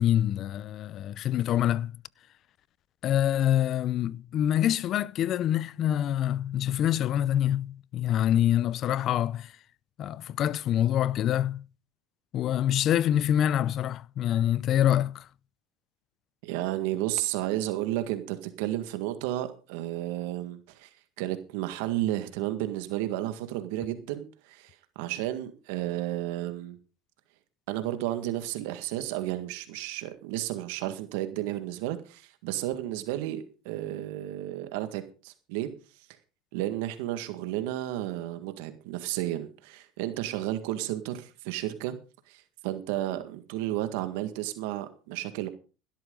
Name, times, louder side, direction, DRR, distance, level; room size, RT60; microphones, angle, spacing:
voice 1, 0.0-1.9 3.0-9.5 10.0-11.6 12.3-15.3, left 11 dB, 45° left, 0.6 m, -26 dB
voice 2, 16.4-20.9 21.2-26.8 27.7-35.7 36.5-41.9 42.3-45.5, right 14 dB, 75° right, 1.8 m, -32 dB
17.0 x 12.5 x 3.9 m
supercardioid pair, 120°, 0 cm